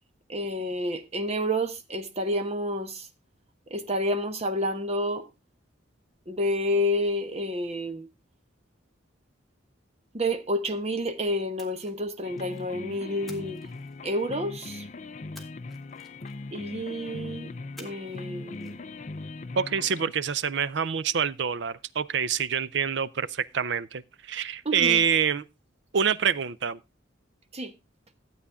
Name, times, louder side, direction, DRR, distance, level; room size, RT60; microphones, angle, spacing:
voice 1, 0.3-3.1 3.7-5.3 6.3-8.1 10.1-13.7 14.0-14.9 16.5-17.5 17.8-18.8 24.6-25.0 27.5-27.7, equal, 35° right, 1.1 m, -29 dB
Splash splatter, 11.6-12.7 13.3-14.4 15.3-16.6 17.8-18.3 18.5-18.7, left 1 dB, ahead, 1.7 m, -52 dB
sound 1, 12.2-20.1, left 3 dB, 35° left, 0.4 m, -40 dB
voice 2, 19.6-25.4 25.9-26.8, right 7 dB, 65° right, 0.5 m, -26 dB
13.0 x 8.4 x 3.5 m
head